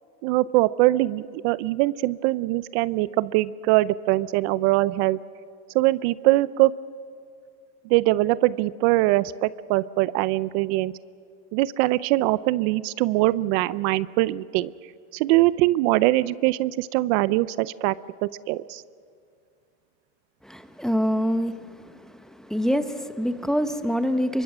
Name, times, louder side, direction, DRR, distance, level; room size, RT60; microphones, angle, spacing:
voice 1, 0.2-5.2 5.7-6.7 7.9-10.9 11.5-14.7 15.1-17.9 18.2-18.8, right 18 dB, 70° right, 18 dB, 0.7 m, -22 dB
voice 2, 20.4-21.6 22.5-24.4, equal, ahead, 9 dB, 0.9 m, -25 dB
26.5 x 23.5 x 6.2 m, 2.4 s
supercardioid pair, 135°, 33 cm